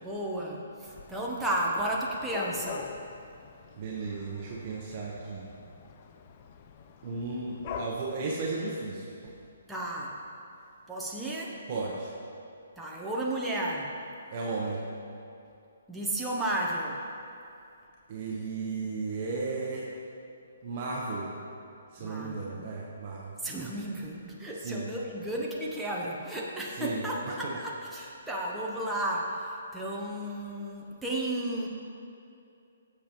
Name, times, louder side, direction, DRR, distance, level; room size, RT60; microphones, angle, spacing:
voice 1, 0.0-2.9 9.7-10.1 10.9-11.6 12.8-13.9 15.9-17.0 22.0-22.6 23.4-29.3 29.7-31.7, right 1 dB, 5° right, -5 dB, 0.7 m, -33 dB
Dog / Cat, 0.9-7.9, left 6 dB, 35° left, 0.4 m, -44 dB
voice 2, 3.8-5.5 7.0-9.1 11.7-12.1 14.3-14.8 18.1-19.9 20.6-21.3 21.9-23.3 24.6-24.9 26.8-27.6, right 3 dB, 35° right, -4 dB, 1.0 m, -34 dB
14.5 x 7.2 x 3.0 m, 2.6 s
hypercardioid pair, 160°, 0 cm